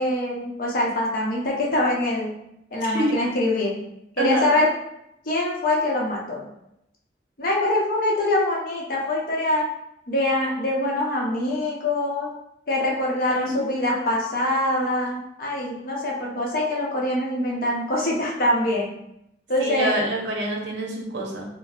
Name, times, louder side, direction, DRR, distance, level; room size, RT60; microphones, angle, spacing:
voice 1, 0.0-2.3 2.7-3.8 4.2-4.7 5.2-6.5 7.4-9.6 10.1-12.3 12.7-18.9 19.5-19.9, left 1 dB, 50° left, -2 dB, 0.6 m, -24 dB
voice 2, 2.8-3.2 4.2-4.5 13.3-13.6 19.6-21.5, right 1 dB, 70° right, 0 dB, 0.7 m, -26 dB
4.1 x 2.0 x 2.3 m, 0.81 s
head